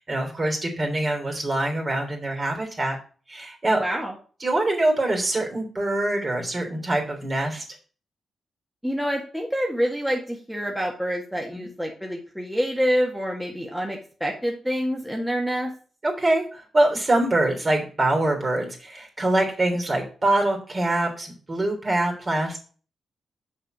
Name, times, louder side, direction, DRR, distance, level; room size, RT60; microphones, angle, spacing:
voice 1, 0.0-3.0 3.3-3.8 4.4-7.6 11.5-11.7 16.0-22.6, right 1 dB, 35° right, 2 dB, 3.3 m, -24 dB
voice 2, 3.8-4.1 8.8-15.7, equal, 5° right, -1 dB, 1.8 m, -27 dB
6.5 x 5.0 x 6.0 m, 0.40 s
cardioid pair, 55°, 0 cm